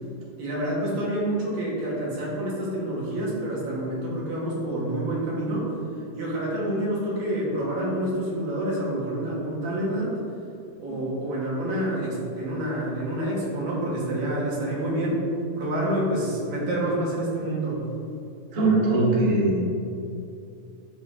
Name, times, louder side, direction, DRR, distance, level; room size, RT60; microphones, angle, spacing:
voice 1, 0.4-10.2 10.8-15.2 15.6-17.9, right 1 dB, 60° right, -5 dB, 2.6 m, -28 dB
voice 2, 18.5-19.8, right 2 dB, 75° right, -5 dB, 0.7 m, -21 dB
10.5 x 3.9 x 3.6 m, 2.7 s
omnidirectional pair, 3.9 m